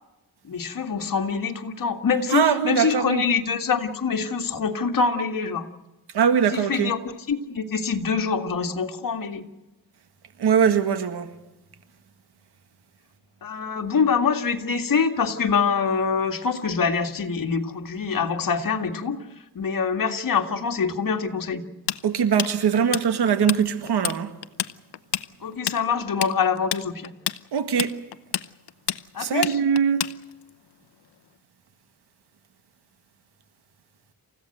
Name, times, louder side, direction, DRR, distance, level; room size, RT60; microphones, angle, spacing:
voice 1, 0.4-5.7 6.5-9.5 13.4-19.2 19.5-21.6 25.4-27.1 29.1-29.5, left 5 dB, 60° left, 2.2 m, -25 dB
voice 2, 2.3-3.2 6.1-6.9 10.4-11.3 22.0-24.3 27.5-27.9 29.2-30.1, right 7 dB, 85° right, 1.9 m, -21 dB
Tools, 21.9-23.6 23.9-24.2 24.4-30.5, left 12 dB, 90° left, 0.8 m, -28 dB
28.5 x 15.5 x 7.9 m
wide cardioid pair, 130°, 38 cm